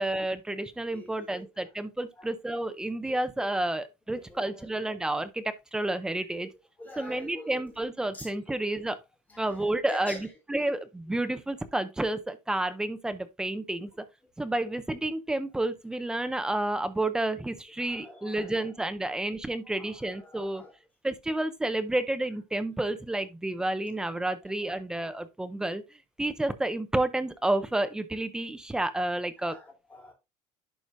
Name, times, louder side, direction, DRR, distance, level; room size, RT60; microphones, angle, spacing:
voice 1, 0.0-6.5 7.0-9.0 9.4-10.2 10.5-13.9 14.4-20.6 21.0-25.8 26.2-29.5, right 1 dB, 5° right, 0.5 m, -30 dB
voice 2, 0.8-1.7 2.2-2.3 3.1-3.2 4.1-4.7 6.3-6.5 6.8-7.7 8.1-8.4 9.3-10.8 11.2-11.3 17.8-18.7 19.0-19.1 19.6-20.8 24.6-24.8 29.4-30.1, left 2 dB, 15° left, 3.2 m, -46 dB
11.0 x 4.8 x 2.6 m
cardioid pair, 170°, 12 cm